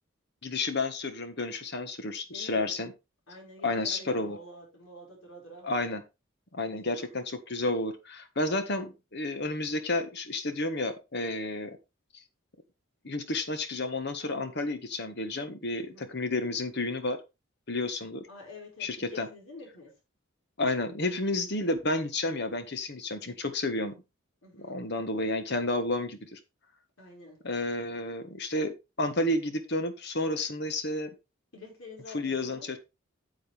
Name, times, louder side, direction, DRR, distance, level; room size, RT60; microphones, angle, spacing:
voice 1, 0.4-2.9 3.6-4.4 5.6-6.0 6.5-11.8 13.0-17.2 17.7-18.2 18.8-19.3 20.6-23.9 24.5-26.4 27.4-31.1 32.1-32.8, left 2 dB, 55° left, 1.5 m, -31 dB
voice 2, 2.3-2.8 3.3-5.7 6.7-7.2 15.8-16.1 18.3-19.9 24.4-24.8 27.0-27.4 31.5-32.8, left 2 dB, 75° left, 5.4 m, -48 dB
9.0 x 7.9 x 3.4 m
head